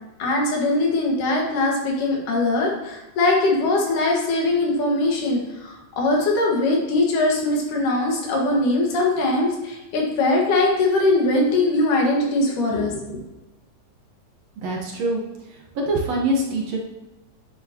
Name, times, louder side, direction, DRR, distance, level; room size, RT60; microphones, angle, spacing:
voice 1, 0.2-13.2, left 2 dB, 75° left, -1 dB, 3.4 m, -21 dB
voice 2, 14.6-15.2 15.8-16.8, right 1 dB, 60° right, 0 dB, 2.2 m, -23 dB
9.5 x 9.2 x 3.0 m, 1.0 s
omnidirectional pair, 3.7 m